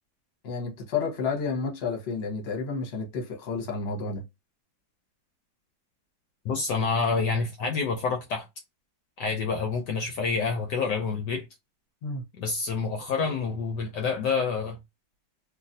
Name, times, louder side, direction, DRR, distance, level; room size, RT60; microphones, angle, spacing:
voice 1, 0.4-4.2 12.0-12.2, left 4 dB, 40° left, 1.0 m, -31 dB
voice 2, 6.4-8.5 9.2-11.5 12.4-14.8, left 4 dB, 70° left, 1.2 m, -28 dB
3.1 x 2.5 x 2.7 m
omnidirectional pair, 2.1 m